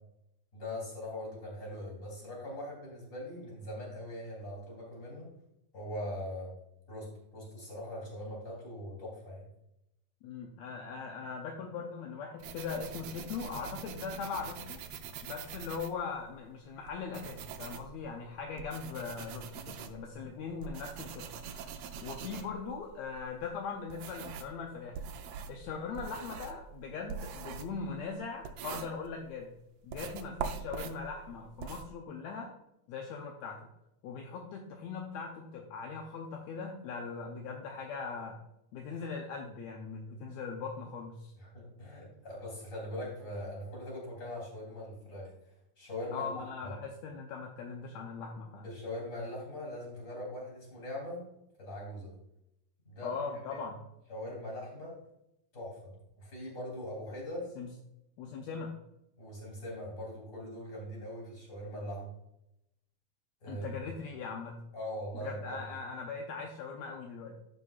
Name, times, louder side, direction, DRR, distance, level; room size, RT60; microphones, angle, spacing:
voice 1, 0.5-5.3 5.7-6.5 6.9-9.5 41.4-45.3 45.8-46.7 48.6-51.2 51.6-52.1 52.9-53.2 53.5-53.6 54.1-55.0 55.5-57.5 59.2-62.1 63.4-63.8 64.7-65.6, left 1 dB, 25° left, -3 dB, 3.3 m, -41 dB
voice 2, 10.2-14.8 15.2-21.3 22.0-25.0 25.5-29.5 29.8-32.5 32.9-33.6 34.0-38.4 38.7-41.3 46.1-48.7 53.0-53.8 57.6-57.7 58.2-58.7 63.5-64.6 65.2-67.4, left 5 dB, 75° left, 1 dB, 1.7 m, -40 dB
sound 1, 12.4-16.4 16.9-24.6 24.9-29.4 29.9-31.9, right 7 dB, 80° right, 1.5 m, -43 dB
14.5 x 5.3 x 2.4 m, 0.84 s
omnidirectional pair, 3.9 m